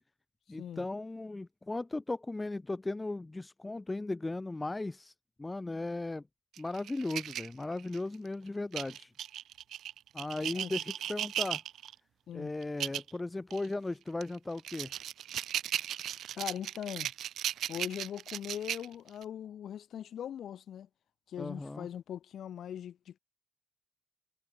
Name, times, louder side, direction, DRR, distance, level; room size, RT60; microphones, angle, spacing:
voice 1, 0.5-5.1 5.4-6.2 6.6-9.1 10.1-11.6 12.3-14.9 21.4-21.9, left 2 dB, 20° left, 1.4 m, -37 dB
sound 1, 6.6-8.1 8.7-11.9 12.6-13.1 13.5-13.7 14.2-19.2, right 11 dB, 80° right, 0.8 m, -37 dB
voice 2, 16.3-17.1 17.7-20.9 21.3-23.2, left 9 dB, 70° left, 7.9 m, -41 dB
cardioid pair, 80°, 0 cm